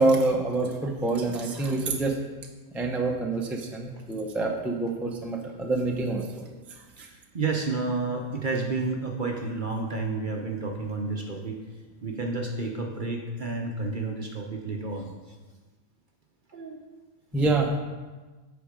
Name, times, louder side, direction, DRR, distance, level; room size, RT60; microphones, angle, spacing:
voice 1, 0.0-2.1 2.7-6.4 17.3-17.8, right 2 dB, ahead, 1 dB, 0.4 m, -26 dB
voice 2, 7.0-11.6 12.0-15.1 16.5-16.8 17.3-17.4, right 3 dB, 45° right, 2 dB, 0.7 m, -31 dB
8.4 x 5.3 x 5.1 m, 1.3 s
omnidirectional pair, 1.5 m